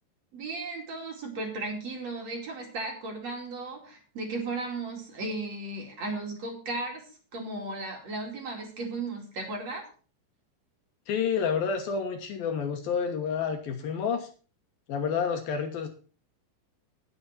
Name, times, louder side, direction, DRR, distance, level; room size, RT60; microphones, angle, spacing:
voice 1, 0.3-9.8, right 2 dB, 45° right, 1 dB, 3.4 m, -35 dB
voice 2, 11.1-14.3 14.9-15.9, left 6 dB, 70° left, 5 dB, 2.8 m, -29 dB
19.5 x 7.2 x 4.3 m, 0.37 s
omnidirectional pair, 4.8 m